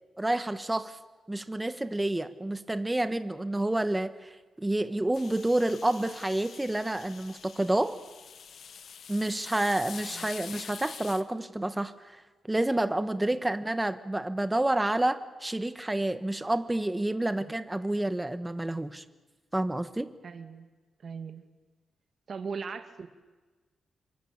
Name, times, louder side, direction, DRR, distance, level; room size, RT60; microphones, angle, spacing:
voice 1, 0.2-1.0 1.3-8.0 9.1-12.2 12.5-19.0 19.5-20.1, right 1 dB, 10° right, 11 dB, 1.5 m, -29 dB
sound 1, 5.1-11.2, left 7 dB, 65° left, 1.4 m, -45 dB
voice 2, 20.2-20.7 21.0-21.4 22.3-23.1, right 5 dB, 50° right, 8 dB, 2.5 m, -38 dB
28.0 x 23.5 x 8.9 m, 1.3 s
wide cardioid pair, 125°, 0 cm